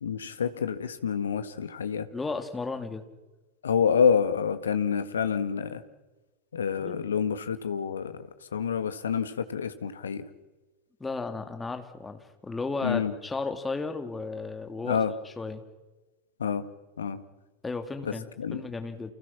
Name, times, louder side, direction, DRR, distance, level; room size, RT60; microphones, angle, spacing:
voice 1, 0.0-2.1 3.6-5.8 6.5-10.3 12.8-13.1 14.8-15.1 16.4-16.6 17.0-17.2 18.0-18.6, left 7 dB, 70° left, 10 dB, 1.9 m, -28 dB
voice 2, 2.1-3.0 6.8-7.1 11.0-15.0 15.2-15.6 17.6-19.1, left 3 dB, 10° left, 6 dB, 2.7 m, -34 dB
30.0 x 29.0 x 6.0 m, 1.2 s
figure-of-eight pair, 90°, 0 cm